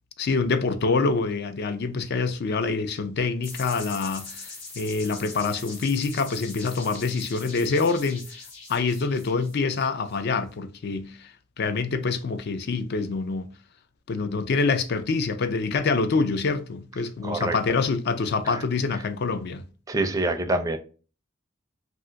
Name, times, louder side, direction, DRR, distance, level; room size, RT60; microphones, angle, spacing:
voice 1, 0.2-8.2 8.7-11.3 11.6-13.5 14.1-19.6, left 4 dB, 55° left, 0.4 m, -26 dB
sound 1, 3.4-10.1, left 3 dB, 80° left, 1.1 m, -42 dB
voice 2, 17.2-17.6 18.5-18.6 19.9-20.8, right 2 dB, 15° right, 0.4 m, -26 dB
2.4 x 2.4 x 3.8 m
head